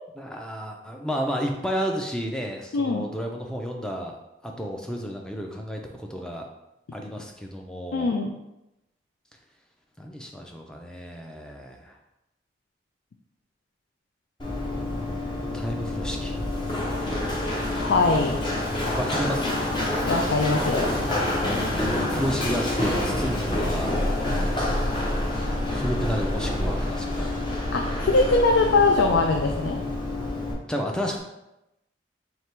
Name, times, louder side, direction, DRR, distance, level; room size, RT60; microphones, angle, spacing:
voice 1, 0.2-4.1 4.4-6.5 6.9-8.1 10.0-11.9 15.5-16.3 18.9-19.6 21.7-23.9 25.7-27.3 30.7-31.2, equal, 5° left, 2 dB, 0.4 m, -31 dB
voice 2, 2.7-3.1 7.9-8.4 17.7-18.4 18.7-18.8 20.1-20.9 27.7-29.8, left 3 dB, 85° left, 3 dB, 0.4 m, -22 dB
Run, 14.4-30.5, left 1 dB, 25° left, 0.8 m, -27 dB
3.3 x 2.9 x 4.4 m, 0.92 s
head